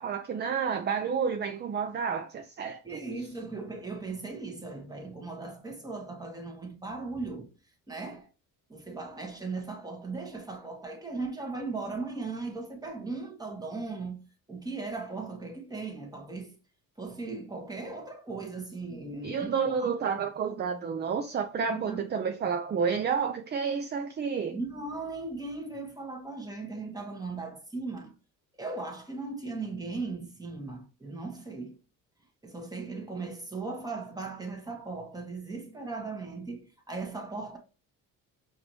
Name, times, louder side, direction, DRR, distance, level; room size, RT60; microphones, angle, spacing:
voice 1, 0.0-3.0 19.2-24.6, right 6 dB, 30° right, 0.5 m, -30 dB
voice 2, 2.8-7.5 7.9-8.3 8.7-14.2 14.5-16.5 17.0-19.9 21.7-22.1 24.5-28.1 28.6-31.8 32.4-37.6, right 3 dB, 10° right, 1.3 m, -38 dB
5.0 x 2.7 x 3.0 m
cardioid pair, 110°, 34 cm